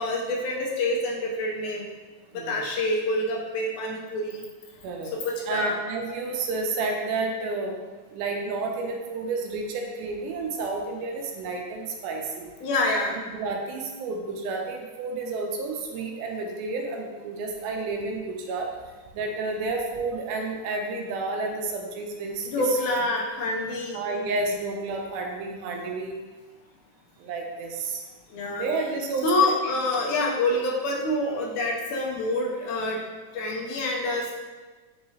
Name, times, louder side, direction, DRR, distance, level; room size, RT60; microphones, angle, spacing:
voice 1, 0.0-1.9 2.3-4.5 5.1-5.8 12.6-13.1 22.5-24.0 28.3-28.7 29.2-33.0 33.3-34.3, left 2 dB, 80° left, -2 dB, 1.9 m, -26 dB
voice 2, 2.3-2.7 4.8-5.1 5.5-7.7 8.1-12.5 12.9-13.0 13.3-22.8 23.9-26.2 27.2-28.0 28.5-29.5, right 3 dB, 85° right, 2 dB, 2.0 m, -31 dB
5.5 x 2.9 x 2.7 m, 1.3 s
omnidirectional pair, 3.7 m